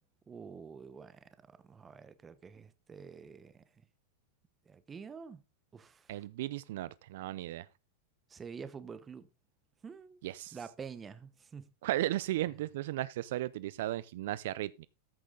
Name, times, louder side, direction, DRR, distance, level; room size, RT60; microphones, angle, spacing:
voice 1, 0.3-3.6 4.7-5.4 5.7-6.2 8.3-9.3 9.8-10.2 10.5-11.7, right 6 dB, 15° right, 1.0 m, -48 dB
voice 2, 6.1-7.7 10.2-10.6 11.8-14.9, right 15 dB, 65° right, 0.5 m, -35 dB
14.0 x 6.2 x 3.8 m
supercardioid pair, 150°, 0 cm